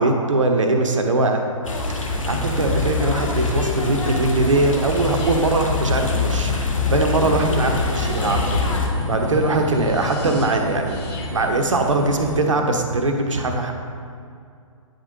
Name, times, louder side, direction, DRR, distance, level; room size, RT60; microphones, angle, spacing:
voice 1, 0.0-1.4 1.9-8.6 9.1-11.0 11.3-13.7, right 2 dB, 65° right, 4 dB, 0.8 m, -21 dB
sound 1, 1.6-8.9, left 4 dB, 70° left, 1.0 m, -24 dB
sound 2, 2.0-12.4, left 1 dB, 90° right, 1.0 m, -32 dB
sound 3, 4.9-12.7, left 2 dB, 15° left, 0.9 m, -34 dB
9.1 x 5.1 x 2.7 m, 2.3 s
figure-of-eight pair, 125°, 17 cm